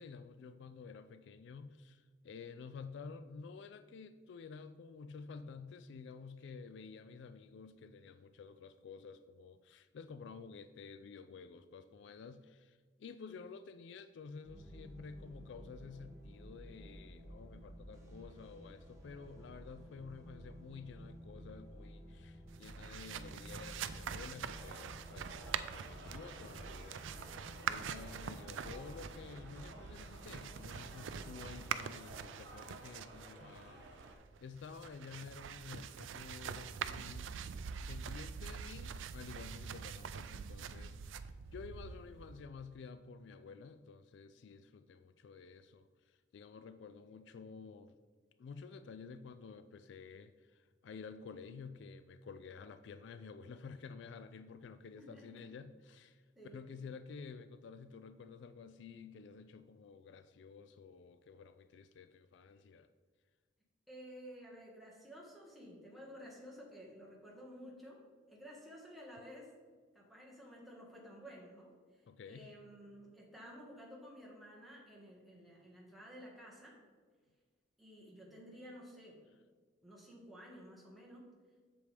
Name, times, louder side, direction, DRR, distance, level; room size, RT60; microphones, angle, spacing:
voice 1, 0.0-27.3 27.7-33.9 34.4-37.3 37.9-41.2 41.5-47.9 48.4-62.9 72.1-72.5, left 5 dB, 65° left, 12 dB, 0.3 m, -51 dB
sound 1, 14.4-31.5, equal, 15° right, 1.2 m, -53 dB
sound 2, 22.5-42.4, right 7 dB, 75° right, 0.4 m, -45 dB
sound 3, 24.4-34.2, right 2 dB, 60° right, 1.0 m, -54 dB
voice 2, 55.0-55.4 56.3-56.6 63.9-68.0 68.3-69.5 69.9-76.8 77.8-79.2 79.8-81.3, equal, ahead, -4 dB, 1.5 m, -53 dB
7.9 x 6.9 x 3.4 m, 1.5 s
head